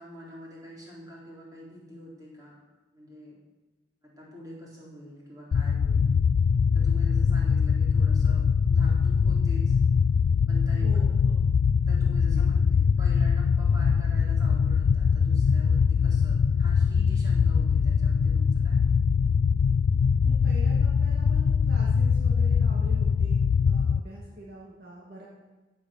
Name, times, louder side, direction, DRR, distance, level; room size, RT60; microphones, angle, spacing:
voice 1, 0.0-2.6 2.9-3.4 4.0-6.1 6.7-9.8 10.5-10.9 11.9-12.5 13.0-19.0, equal, 20° right, -4 dB, 3.9 m, -46 dB
sound 1, 5.5-24.0, left 6 dB, 70° left, 0.3 m, -22 dB
voice 2, 10.7-11.4 12.3-12.4 20.2-25.3, right 1 dB, 50° right, -4 dB, 2.5 m, -45 dB
16.5 x 6.8 x 6.7 m, 1.2 s
head